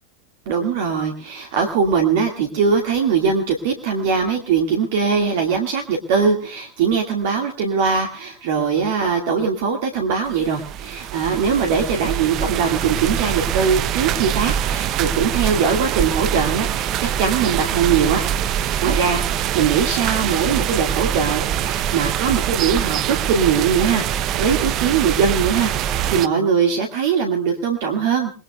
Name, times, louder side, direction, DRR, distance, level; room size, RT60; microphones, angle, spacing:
voice 1, 0.5-18.2 18.8-25.7 26.1-28.3, right 6 dB, 50° right, 3 dB, 2.0 m, -21 dB
sound 1, 10.3-26.3, right 10 dB, 35° right, 0.7 m, -24 dB
28.5 x 20.0 x 2.3 m, 0.41 s
figure-of-eight pair, 90°, 0 cm